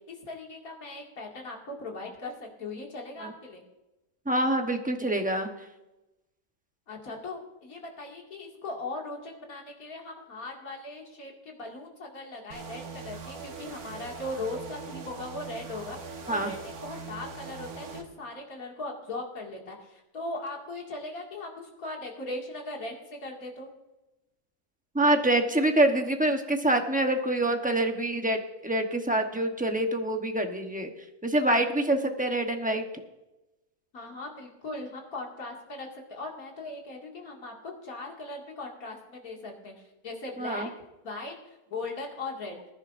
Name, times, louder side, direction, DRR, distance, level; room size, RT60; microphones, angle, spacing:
voice 1, 0.1-3.6 6.9-23.7 33.9-39.7 40.0-40.7 41.0-42.6, left 2 dB, 60° left, 0 dB, 2.7 m, -39 dB
voice 2, 4.3-5.5 16.3-16.5 24.9-30.9 31.2-32.8 40.4-40.7, right 1 dB, 5° right, 4 dB, 0.7 m, -26 dB
sound 1, 12.5-18.0, right 5 dB, 65° right, 1.7 m, -41 dB
20.5 x 10.5 x 2.6 m, 0.98 s
omnidirectional pair, 1.7 m